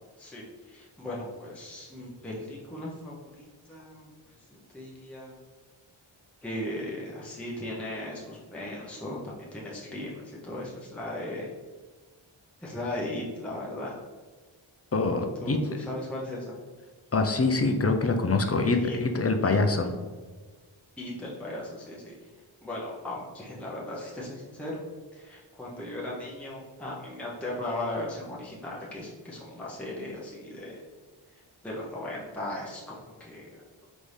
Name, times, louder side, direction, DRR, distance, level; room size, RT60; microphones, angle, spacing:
voice 1, 0.2-5.3 6.4-11.5 12.6-14.0 15.4-16.6 18.6-19.0 19.4-19.6 21.0-22.3 22.6-24.8 25.1-30.8 31.3-33.6, left 1 dB, 5° left, -5 dB, 0.7 m, -37 dB
voice 2, 14.9-15.6 17.1-19.9, left 3 dB, 30° left, 5 dB, 0.4 m, -24 dB
4.0 x 3.5 x 3.3 m, 1.4 s
wide cardioid pair, 60°, 49 cm